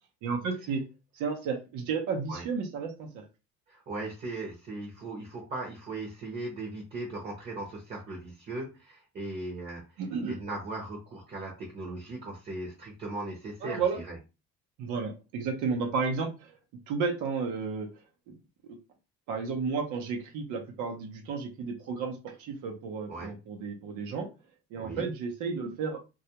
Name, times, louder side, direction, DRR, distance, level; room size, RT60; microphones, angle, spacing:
voice 1, 0.2-0.8 1.2-3.2 10.0-10.4 13.6-14.0 14.8-16.5 16.9-17.9 18.3-18.4 19.3-24.3 24.7-26.0, right 5 dB, 85° right, 2 dB, 0.7 m, -32 dB
voice 2, 3.7-9.8 10.3-14.2 23.1-23.3 24.8-25.1, right 2 dB, 35° right, -1 dB, 0.7 m, -38 dB
2.3 x 2.1 x 2.8 m, 0.29 s
cardioid pair, 150°, 30 cm